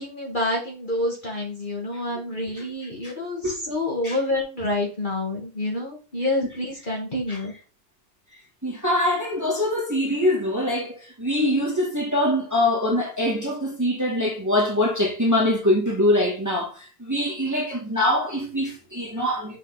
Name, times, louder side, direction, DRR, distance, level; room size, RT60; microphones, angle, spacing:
voice 1, 0.0-7.5, left 1 dB, 35° left, 1.9 m, -28 dB
voice 2, 8.6-19.6, left 1 dB, 10° right, 1.9 m, -23 dB
6.7 x 4.1 x 4.0 m
omnidirectional pair, 1.6 m